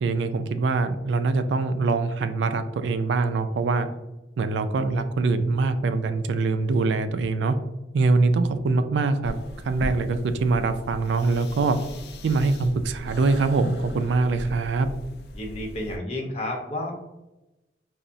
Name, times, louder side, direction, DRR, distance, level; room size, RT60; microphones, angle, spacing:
voice 1, 0.0-3.9 4.4-7.6 7.9-9.3 9.6-11.8 12.2-14.9, right 3 dB, 80° right, 9 dB, 0.3 m, -23 dB
sound 1, 9.2-16.0, left 1 dB, 60° left, 0.4 m, -39 dB
voice 2, 15.3-17.0, left 1 dB, 35° left, -1 dB, 0.7 m, -31 dB
5.6 x 2.0 x 2.5 m, 0.99 s
head